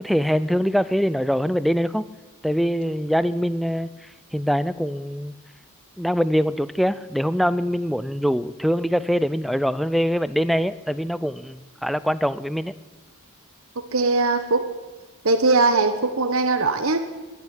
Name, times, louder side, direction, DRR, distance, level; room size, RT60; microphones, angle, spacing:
voice 1, 0.0-2.1 2.4-3.9 4.3-5.3 6.0-12.7, equal, ahead, 16 dB, 0.4 m, -23 dB
voice 2, 13.9-14.6 15.2-17.0, right 3 dB, 65° right, 7 dB, 1.0 m, -20 dB
11.5 x 10.5 x 9.9 m, 1.3 s
head